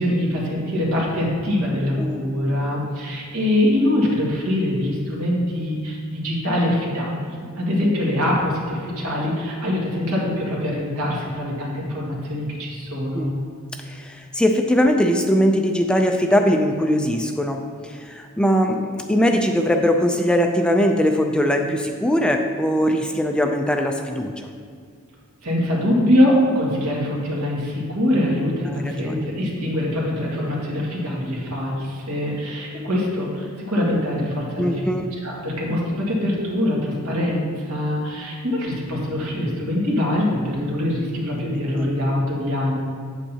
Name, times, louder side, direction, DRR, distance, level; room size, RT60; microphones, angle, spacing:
voice 1, 0.0-13.3 25.4-34.8 35.2-42.8, left 1 dB, 80° right, -4 dB, 2.0 m, -23 dB
voice 2, 13.8-24.5 28.7-29.3 34.6-35.1 41.7-41.9, equal, 5° left, 3 dB, 0.3 m, -21 dB
8.4 x 8.1 x 2.8 m, 2.1 s
head